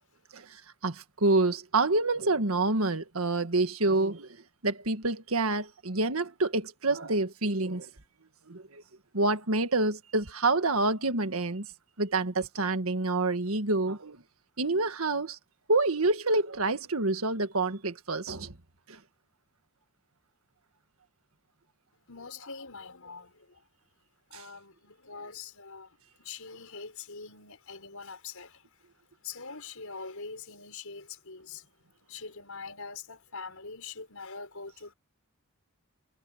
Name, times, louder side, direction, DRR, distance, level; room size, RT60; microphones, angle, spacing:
voice 1, 0.3-4.4 4.6-7.9 8.5-8.8 9.1-11.7 12.0-14.2 14.6-15.4 15.7-18.6 18.9-19.0 24.3-24.4, right 2 dB, 75° right, 1.8 m, -27 dB
voice 2, 22.1-23.6 24.3-28.7 29.2-31.6 32.1-34.9, left 4 dB, 75° left, 6.3 m, -43 dB
head